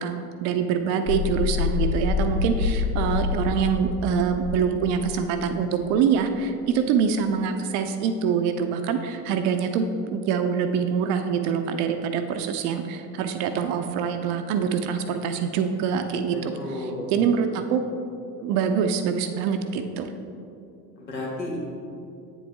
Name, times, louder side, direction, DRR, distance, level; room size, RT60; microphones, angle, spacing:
voice 1, 0.0-17.8 18.4-20.1, right 6 dB, 35° right, 7 dB, 0.5 m, -25 dB
sound 1, 1.1-5.7, left 6 dB, 55° left, 1.9 m, -27 dB
voice 2, 16.5-17.1 21.0-21.6, left 2 dB, 85° left, -3 dB, 1.7 m, -32 dB
8.4 x 7.2 x 3.4 m, 2.6 s
figure-of-eight pair, 75°, 50 cm